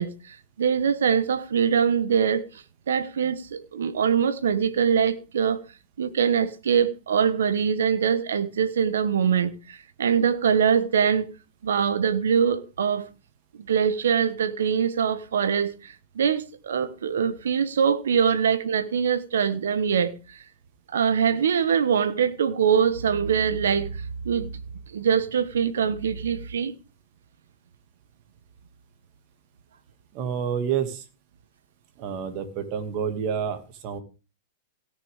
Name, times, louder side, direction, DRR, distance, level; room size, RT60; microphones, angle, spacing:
voice 1, 0.0-2.5 2.9-5.6 6.0-11.3 11.6-13.1 13.7-20.4 20.9-24.5 24.9-26.7, right 7 dB, 85° right, 1.0 m, -23 dB
voice 2, 30.1-31.0 32.0-34.0, right 7 dB, 45° right, 2.1 m, -29 dB
17.0 x 6.8 x 3.6 m
hypercardioid pair, 115°, 0 cm